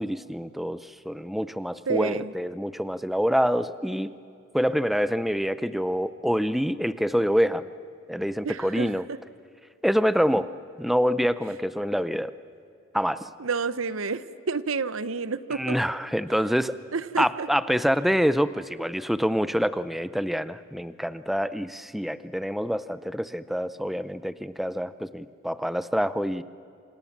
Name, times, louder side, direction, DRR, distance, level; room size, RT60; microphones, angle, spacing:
voice 1, 0.0-4.1 4.5-7.7 8.1-9.1 9.8-10.5 10.8-12.3 12.9-13.3 15.5-16.7 17.2-26.4, equal, ahead, 14 dB, 0.5 m, -26 dB
voice 2, 1.9-2.3 8.4-9.2 13.4-15.7 16.9-17.5, right 4 dB, 85° right, 15 dB, 0.9 m, -30 dB
28.0 x 26.5 x 7.3 m, 2.6 s
head